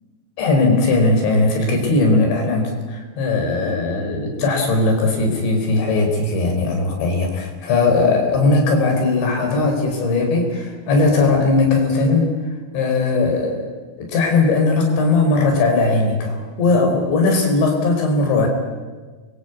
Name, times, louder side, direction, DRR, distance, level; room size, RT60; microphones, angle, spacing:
voice 1, 0.4-12.3 12.7-13.7 14.0-18.5, left 3 dB, 70° left, 3 dB, 6.8 m, -18 dB
29.5 x 23.5 x 8.3 m, 1.4 s
omnidirectional pair, 5.5 m